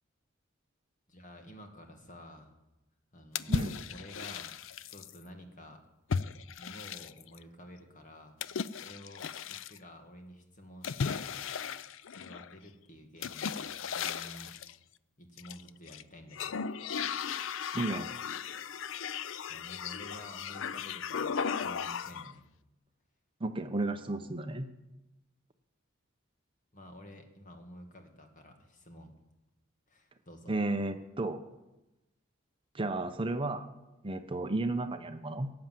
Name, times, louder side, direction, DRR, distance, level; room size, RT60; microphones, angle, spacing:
voice 1, 1.1-2.5 3.1-4.6 4.9-5.8 6.6-8.4 8.8-11.3 12.2-14.5 15.2-16.6 19.5-22.5 26.7-29.1 29.9-30.5, equal, 40° left, 4 dB, 2.1 m, -51 dB
sound 1, 3.3-5.2 6.1-7.4 8.4-9.8 10.8-12.5 13.2-14.7 15.4-16.0 16.3-22.3, left 6 dB, 65° left, 0.5 m, -36 dB
voice 2, 3.5-3.8 17.7-18.1 23.4-24.7 30.5-31.4 32.7-33.7 34.0-35.5, right 2 dB, 25° right, 8 dB, 0.8 m, -33 dB
17.5 x 8.7 x 7.7 m, 0.97 s
head